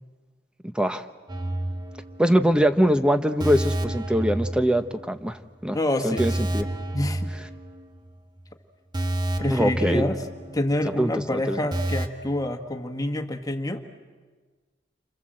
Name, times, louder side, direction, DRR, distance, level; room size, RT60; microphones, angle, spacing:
voice 1, 0.6-1.1 2.2-5.8 6.0-6.7 9.5-10.1 11.0-11.6, equal, 5° right, 9 dB, 1.1 m, -23 dB
sound 1, 1.3-2.6 2.8-3.0 3.4-5.3 5.6-5.7 6.2-8.1 8.4-8.5 8.9-10.9 11.2-11.3 11.7-12.1, right 1 dB, 25° right, 1.5 m, -30 dB
voice 2, 5.7-6.6 6.9-7.3 9.4-10.2 10.5-13.8, left 1 dB, 20° left, 5 dB, 1.6 m, -27 dB
29.5 x 26.0 x 7.8 m, 1.4 s
head